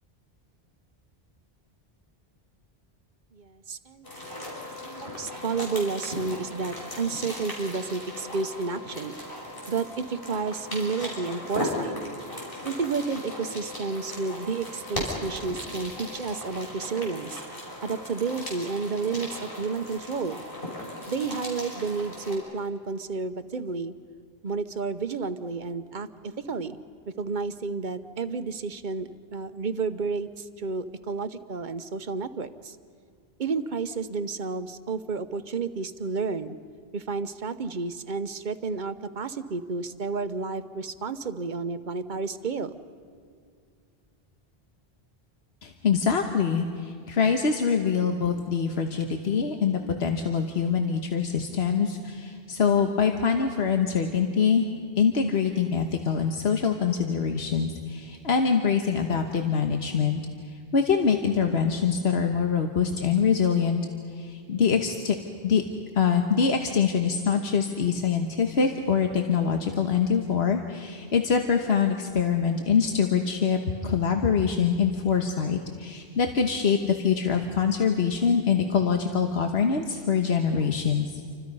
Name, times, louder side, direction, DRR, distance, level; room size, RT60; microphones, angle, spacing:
voice 1, 3.4-4.1 4.3-9.2 9.7-11.9 12.6-17.4 17.8-20.4 21.1-23.9 24.4-26.8 27.2-32.8 33.4-36.5 36.9-42.8, right 4 dB, 50° right, 11 dB, 1.0 m, -31 dB
sound 1, 4.0-22.3, left 1 dB, 60° left, 5.9 m, -37 dB
voice 2, 45.6-60.2 60.7-63.8 64.2-65.2 65.4-65.6 66.0-81.1, left 6 dB, 85° left, 4 dB, 1.4 m, -24 dB
29.0 x 25.0 x 5.5 m, 2.2 s
omnidirectional pair, 1.0 m